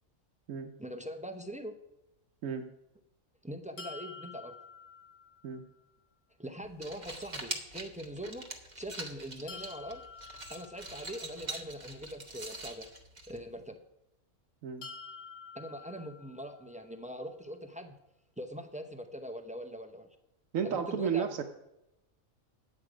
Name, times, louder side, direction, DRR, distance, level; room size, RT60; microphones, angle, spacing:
voice 1, 0.8-1.7 3.4-4.5 6.4-8.5 8.8-10.0 10.5-12.9 13.3-13.8 15.5-18.0 18.4-20.1 20.6-21.3, equal, 10° right, 6 dB, 0.4 m, -42 dB
sound 1, 3.8-5.7 9.5-11.5 14.8-16.8, left 5 dB, 65° left, 1.3 m, -49 dB
sound 2, 6.6-13.7, right 2 dB, 35° right, 1.1 m, -44 dB
voice 2, 20.5-21.4, right 7 dB, 80° right, 5 dB, 1.1 m, -33 dB
9.5 x 8.0 x 4.9 m, 0.88 s
omnidirectional pair, 1.4 m